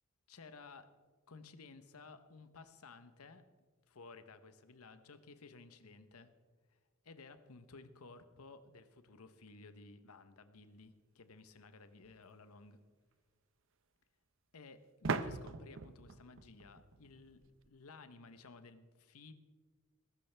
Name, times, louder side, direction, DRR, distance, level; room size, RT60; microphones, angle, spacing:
voice 1, 0.3-0.9 1.3-3.4 3.9-6.3 6.7-6.8 7.0-12.8 14.5-19.3, left 3 dB, 85° left, 11 dB, 0.9 m, -56 dB
sound 1, 12.0-12.1 15.0-17.7, right 4 dB, 60° right, 0.6 m, -41 dB
20.0 x 12.0 x 3.4 m, 1.5 s
head